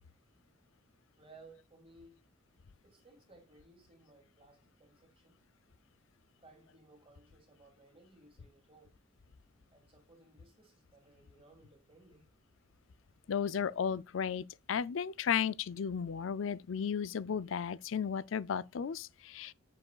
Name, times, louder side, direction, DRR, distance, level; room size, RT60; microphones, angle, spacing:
voice 1, 1.2-2.2 2.8-5.4 6.4-8.9 9.7-12.3, right 2 dB, 30° right, 2.7 m, -60 dB
voice 2, 13.3-19.5, left 7 dB, 75° left, 0.4 m, -34 dB
7.6 x 7.6 x 2.4 m
head